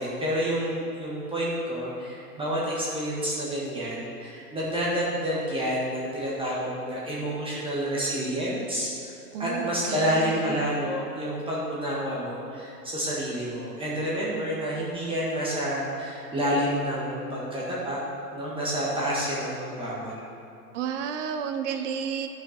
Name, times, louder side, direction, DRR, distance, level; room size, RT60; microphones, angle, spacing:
voice 1, 0.0-9.1 9.4-18.0 18.3-20.2, equal, 10° right, -6 dB, 1.7 m, -29 dB
voice 2, 9.3-10.6 20.7-22.3, right 7 dB, 45° right, 8 dB, 1.0 m, -32 dB
14.5 x 6.0 x 4.5 m, 2.8 s
hypercardioid pair, 125°, 48 cm